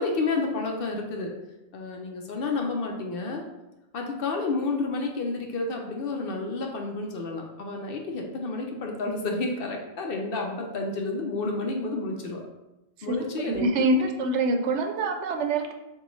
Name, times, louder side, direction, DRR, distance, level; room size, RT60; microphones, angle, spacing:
voice 1, 0.0-1.3 1.7-3.4 3.9-12.4 13.0-13.8, left 3 dB, 60° left, 2 dB, 0.8 m, -30 dB
voice 2, 13.4-15.7, right 2 dB, 80° right, 4 dB, 0.9 m, -25 dB
6.5 x 2.3 x 3.0 m, 0.98 s
omnidirectional pair, 1.2 m